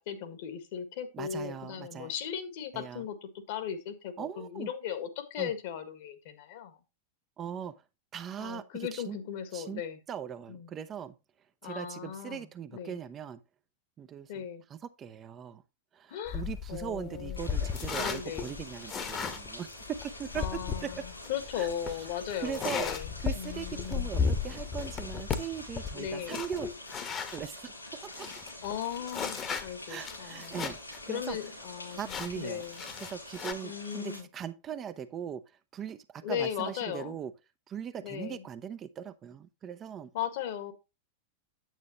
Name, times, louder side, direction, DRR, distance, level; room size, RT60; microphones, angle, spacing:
voice 1, 0.1-6.8 8.4-10.0 10.5-10.7 11.6-13.0 14.3-14.6 16.1-16.4 16.7-17.5 18.0-18.5 20.3-24.1 25.9-26.4 28.6-30.7 31.1-32.0 32.3-32.8 33.6-34.3 36.2-37.2 38.0-38.4 40.1-40.7, left 9 dB, 50° left, 1.6 m, -37 dB
voice 2, 1.1-2.1 2.7-3.0 4.2-4.7 5.4-5.5 7.4-7.7 8.1-9.2 9.5-9.8 10.1-11.1 11.6-13.4 14.0-15.6 15.9-19.7 20.2-21.0 21.6-21.7 22.4-22.9 23.2-26.7 27.3-28.3 29.9-30.8 31.1-31.4 31.9-32.6 33.0-35.4 35.7-37.3 37.7-40.1, right 8 dB, 25° right, 0.7 m, -40 dB
sound 1, 16.3-27.4 27.9-28.0 28.1-31.0 31.3-31.4 32.1-33.5, left 6 dB, 25° left, 1.2 m, -35 dB
sound 2, 17.4-34.2, left 1 dB, 85° left, 6.3 m, -46 dB
9.1 x 8.4 x 3.0 m
figure-of-eight pair, 90°, 0 cm